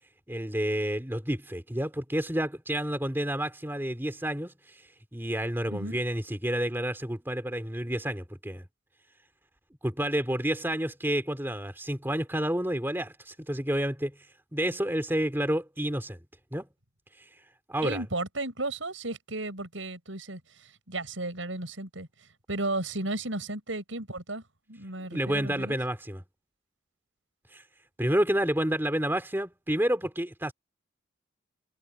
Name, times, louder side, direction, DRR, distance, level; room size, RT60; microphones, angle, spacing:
voice 1, 0.3-4.8 5.1-8.6 9.8-14.1 14.5-16.2 16.5-16.7 17.7-18.0 25.1-26.2 27.5-27.6 28.0-30.5, right 1 dB, 10° right, 2.8 m, -29 dB
voice 2, 5.7-6.0 17.8-24.4 24.7-25.8, right 2 dB, 80° right, 6.7 m, -34 dB
head